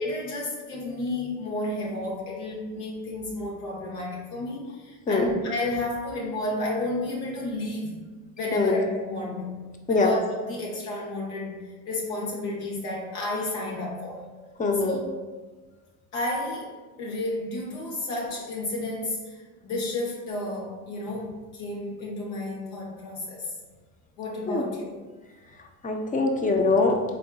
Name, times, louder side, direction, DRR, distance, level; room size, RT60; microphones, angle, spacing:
voice 1, 0.0-8.0 8.4-9.6 9.9-14.2 14.8-15.1 16.1-23.5 24.2-25.1, left 2 dB, 75° left, -3 dB, 0.9 m, -32 dB
voice 2, 14.6-15.0 24.5-24.7 25.8-27.0, left 3 dB, 20° left, 3 dB, 0.4 m, -23 dB
3.8 x 3.4 x 2.3 m, 1.3 s
hypercardioid pair, 80°, 44 cm